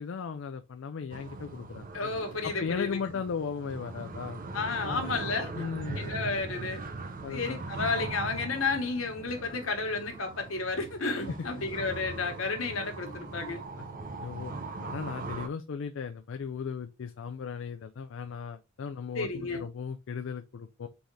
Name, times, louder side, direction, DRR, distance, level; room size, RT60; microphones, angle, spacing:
voice 1, 0.0-2.1 2.4-4.4 4.8-5.1 5.5-6.0 7.2-7.6 11.3-11.4 14.2-14.5 14.8-20.9, left 6 dB, 65° left, 0.4 m, -36 dB
sound 1, 1.1-15.5, right 3 dB, 45° right, 0.6 m, -40 dB
voice 2, 1.9-3.0 4.5-5.5 5.9-6.8 7.3-13.6 19.1-19.7, left 3 dB, 80° left, 1.3 m, -32 dB
4.0 x 3.5 x 3.1 m
head